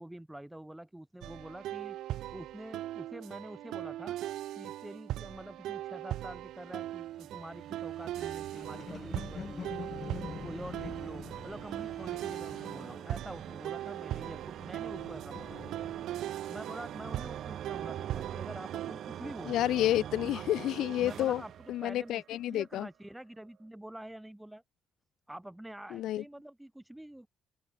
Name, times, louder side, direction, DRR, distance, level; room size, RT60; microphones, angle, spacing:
voice 1, 0.0-2.0 2.3-4.2 4.5-9.7 10.3-15.6 16.3-19.6 20.3-20.4 21.0-24.6 25.3-27.3, right 1 dB, 5° right, 3.4 m, -46 dB
sound 1, 1.2-18.9, right 13 dB, 85° right, 0.6 m, -40 dB
sound 2, 6.4-22.5, right 10 dB, 70° right, 1.5 m, -45 dB
sound 3, 8.1-13.7 14.0-16.3, left 6 dB, 45° left, 1.0 m, -46 dB
voice 2, 19.5-21.4 21.7-22.9 25.9-26.2, left 13 dB, 85° left, 0.4 m, -30 dB
cardioid pair, 90°, 0 cm